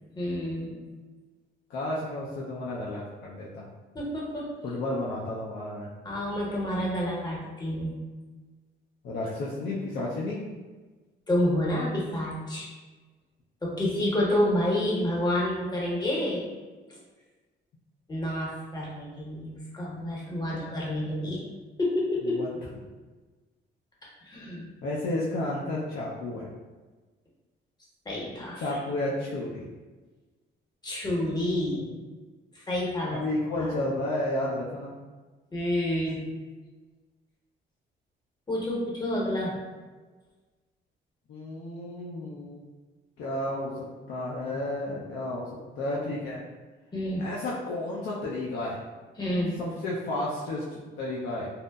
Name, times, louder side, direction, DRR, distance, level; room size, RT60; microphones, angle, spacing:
voice 1, 0.1-0.7 3.9-4.5 6.0-7.9 11.3-12.7 13.6-16.5 16.9-17.0 18.1-21.4 21.8-22.4 24.2-24.6 28.0-28.8 30.8-31.9 32.5-33.2 33.5-33.7 35.5-36.2 38.5-39.5 46.9-47.3 49.2-49.6, left 1 dB, 20° left, -4 dB, 0.8 m, -29 dB
voice 2, 1.7-3.7 4.6-5.9 9.0-10.4 20.5-20.6 21.1-21.2 22.3-22.5 24.8-26.5 28.6-29.7 33.1-34.9 41.3-42.6 43.2-46.4 47.2-48.8 49.6-51.5, left 1 dB, 70° left, -5 dB, 0.5 m, -32 dB
2.7 x 2.0 x 2.2 m, 1.3 s
cardioid pair, 90°, 20 cm